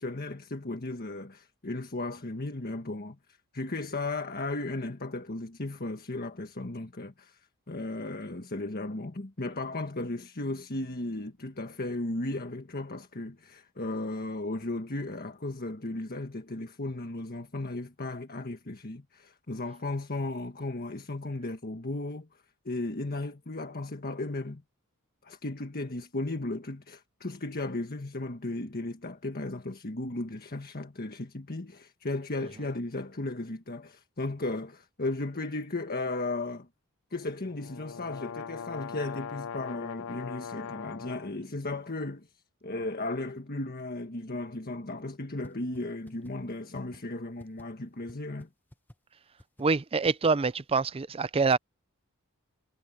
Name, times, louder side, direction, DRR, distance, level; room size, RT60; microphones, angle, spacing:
voice 1, 0.0-3.2 3.5-7.4 7.7-22.3 22.6-24.6 25.2-36.7 37.1-42.3 42.6-48.5, left 2 dB, 45° left, 1.5 m, -35 dB
sound 1, 37.4-41.3, left 7 dB, 65° left, 0.5 m, -40 dB
sound 2, 45.4-45.5 45.8-45.9 46.1-46.3 46.7-47.0 47.4-47.6 48.1-48.2 48.4-48.5 48.7-49.0 49.4-49.6 50.0-50.3, equal, 10° left, 1.5 m, -50 dB
voice 2, 49.6-51.6, right 4 dB, 25° right, 0.5 m, -25 dB
head